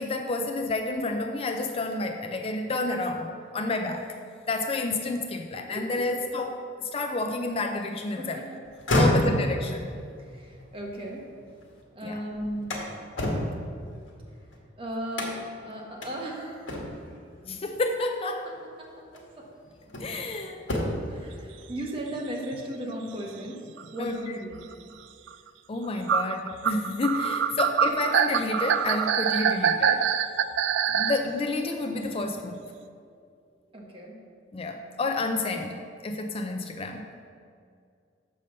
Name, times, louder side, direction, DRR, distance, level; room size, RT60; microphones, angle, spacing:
voice 1, 0.0-4.2 4.5-8.4 8.9-9.9 12.0-12.2 17.5-18.5 20.0-20.6 24.0-24.3 25.7-30.0 30.9-32.6 34.5-37.1, left 2 dB, 30° left, 4 dB, 0.4 m, -30 dB
voice 2, 5.7-6.2 8.1-8.6 9.3-9.4 10.3-11.2 11.9-12.7 14.8-16.8 18.6-19.5 21.1-23.6 23.9-24.6 33.7-34.2, equal, 30° right, -1 dB, 1.2 m, -36 dB
sound 1, 8.7-11.8 12.2-14.6 15.1-15.6 16.0-16.1 16.7-17.2 18.4-18.6 19.1-20.3 20.6-21.2, left 1 dB, 80° left, 1.5 m, -29 dB
sound 2, 22.2-22.3 22.5-22.7 23.5-23.6 23.8-23.9 24.5-24.7 25.3-25.4 26.1-31.2, right 7 dB, 70° right, 0.4 m, -25 dB
6.7 x 5.4 x 6.3 m, 2.3 s
head